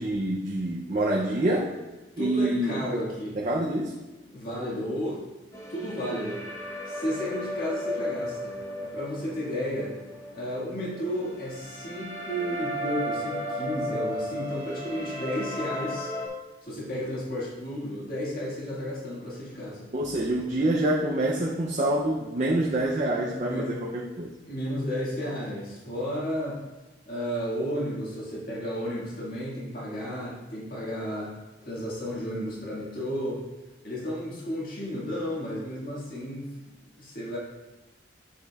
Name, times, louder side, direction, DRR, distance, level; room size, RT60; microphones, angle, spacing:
voice 1, 0.0-1.7 2.2-2.8 3.4-3.9 19.9-24.3, right 1 dB, 40° right, -2 dB, 0.6 m, -26 dB
voice 2, 2.2-3.4 4.3-5.2 5.7-6.5 6.9-8.6 8.8-9.9 10.3-16.1 16.6-19.9 23.4-23.7 24.5-26.6 27.1-31.3 31.6-33.4 33.8-36.7 37.0-37.4, equal, 50° left, -5 dB, 2.0 m, -33 dB
sound 1, 5.5-16.3, equal, 20° left, 1.0 m, -35 dB
7.5 x 6.6 x 2.4 m, 1.1 s
head